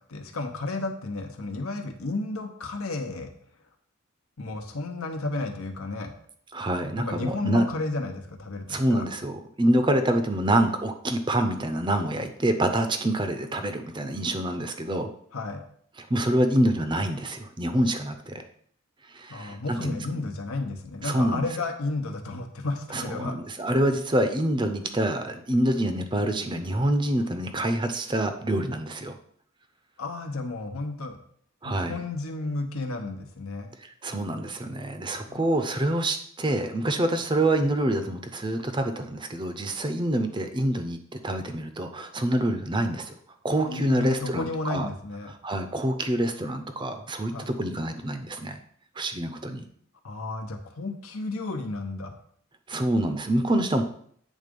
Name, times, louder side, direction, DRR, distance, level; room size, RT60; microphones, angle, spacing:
voice 1, 0.1-3.3 4.4-6.1 7.0-9.1 15.3-15.6 19.3-23.3 30.0-31.2 31.6-33.7 35.3-35.4 43.6-45.3 47.3-47.5 50.0-52.1, left 2 dB, 80° left, 5 dB, 1.0 m, -32 dB
voice 2, 6.5-7.7 8.7-15.1 16.0-18.3 19.1-20.0 21.0-21.4 22.9-29.2 31.6-32.0 33.8-41.0 41.2-43.1 43.4-44.9 45.4-48.6 49.0-49.6 52.7-53.8, right 1 dB, 20° right, 7 dB, 0.5 m, -26 dB
8.3 x 3.7 x 5.3 m, 0.62 s
head